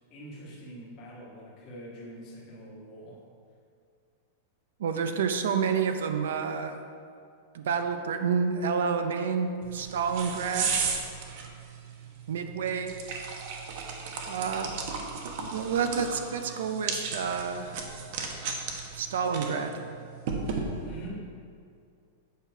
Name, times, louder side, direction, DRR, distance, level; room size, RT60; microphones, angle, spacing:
voice 1, 0.1-3.2 20.8-21.2, right 1 dB, 25° left, -7 dB, 1.6 m, -44 dB
voice 2, 4.8-6.8 7.5-10.7 12.3-13.0 14.3-14.8 15.2-17.7 18.9-19.9, right 6 dB, 80° right, 7 dB, 0.7 m, -29 dB
sound 1, 9.6-21.1, right 5 dB, 40° right, 0.9 m, -35 dB
8.5 x 5.8 x 4.7 m, 2.3 s
supercardioid pair, 180°, 0 cm